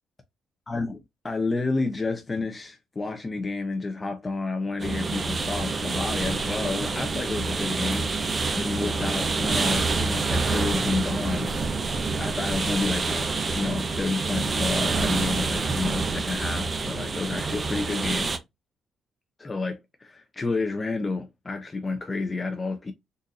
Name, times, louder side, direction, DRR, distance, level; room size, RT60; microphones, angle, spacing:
voice 1, 0.7-11.5 12.2-18.3 19.4-22.9, left 3 dB, 25° left, 0.6 m, -30 dB
sound 1, 4.8-18.4, right 4 dB, 35° right, 0.6 m, -27 dB
3.9 x 2.6 x 2.4 m
cardioid pair, 90°, 0 cm